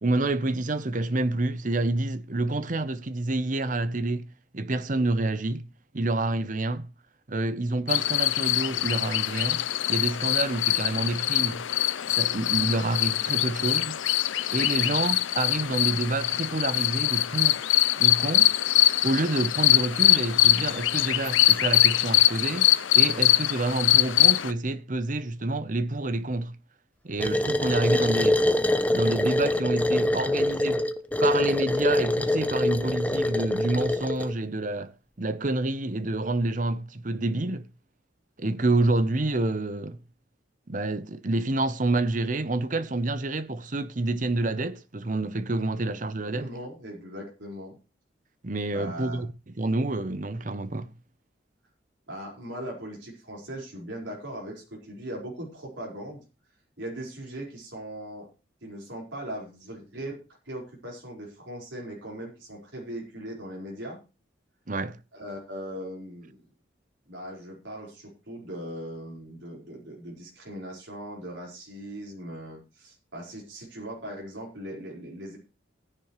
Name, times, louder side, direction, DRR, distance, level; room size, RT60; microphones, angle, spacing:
voice 1, 0.0-4.3 4.5-5.6 5.9-6.9 7.3-9.6 9.9-11.6 12.1-14.0 14.5-17.6 18.0-18.6 19.0-22.7 22.9-26.5 27.0-28.4 28.9-30.8 31.2-34.9 35.2-37.6 38.4-40.0 40.7-46.5 48.4-49.3 49.6-50.9 64.7-65.0, right 2 dB, 45° right, 0.8 m, -28 dB
sound 1, 7.9-24.5, left 15 dB, 90° left, 0.6 m, -23 dB
sound 2, 27.2-34.3, left 1 dB, 10° left, 0.8 m, -24 dB
voice 2, 46.3-47.7 48.7-49.2 52.1-56.2 56.8-58.3 58.6-64.0 65.1-66.4 67.1-75.4, right 1 dB, 80° right, 4.8 m, -39 dB
15.5 x 10.5 x 3.2 m
head